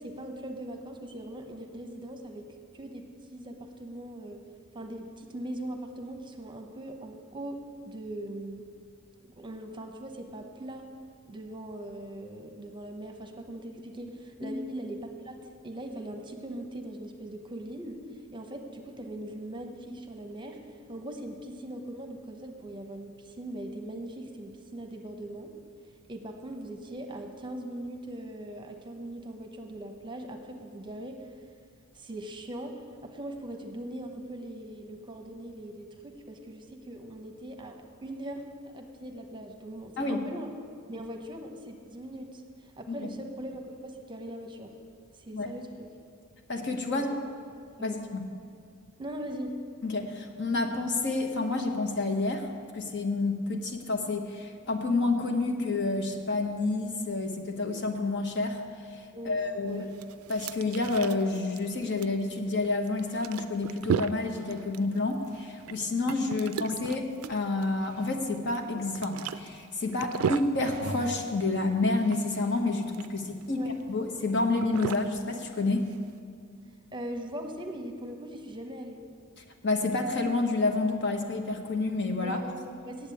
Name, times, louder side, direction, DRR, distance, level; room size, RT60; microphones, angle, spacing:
voice 1, 0.0-2.5 2.7-4.4 4.7-8.6 9.3-10.9 11.3-15.4 15.6-25.5 26.1-31.3 31.9-40.5 40.9-44.7 45.1-45.9 46.9-47.1 47.8-48.0 49.0-49.6 59.1-59.9 73.5-73.7 76.9-79.0 82.2-83.1, right 1 dB, 25° right, 4 dB, 0.9 m, -40 dB
voice 2, 46.5-47.1 47.8-48.2 49.8-52.5 52.7-58.6 59.2-59.9 60.3-75.9 79.6-82.4, left 3 dB, 55° left, 5 dB, 1.0 m, -29 dB
sound 1, 59.7-76.2, right 7 dB, 85° right, 0.3 m, -37 dB
8.9 x 7.9 x 8.5 m, 2.2 s
head